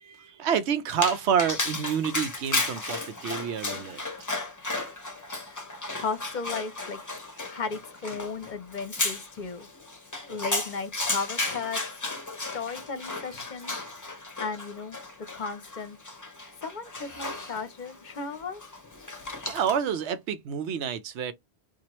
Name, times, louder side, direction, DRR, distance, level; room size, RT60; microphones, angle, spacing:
voice 1, 0.0-4.0 19.4-21.3, right 8 dB, 85° right, 0.9 m, -28 dB
Dog, 0.9-20.0, left 2 dB, 20° left, 0.7 m, -34 dB
voice 2, 5.2-5.6 5.9-7.0 7.5-9.7 10.2-11.8 12.4-13.8 14.4-15.0 15.3-16.0 16.6-18.6, left 4 dB, 50° left, 0.7 m, -35 dB
4.5 x 2.4 x 2.9 m
omnidirectional pair, 1.1 m